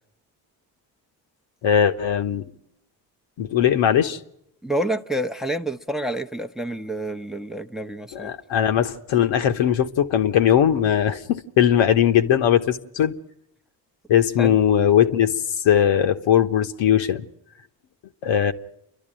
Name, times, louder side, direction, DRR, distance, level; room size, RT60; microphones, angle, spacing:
voice 1, 1.6-2.4 3.4-4.2 8.1-13.1 14.1-15.3 15.6-17.2 18.2-18.5, left 9 dB, 65° left, 1.2 m, -19 dB
voice 2, 4.6-8.3 14.4-14.6, right 1 dB, ahead, 0.8 m, -28 dB
29.0 x 12.0 x 8.9 m
hypercardioid pair, 45°, 49 cm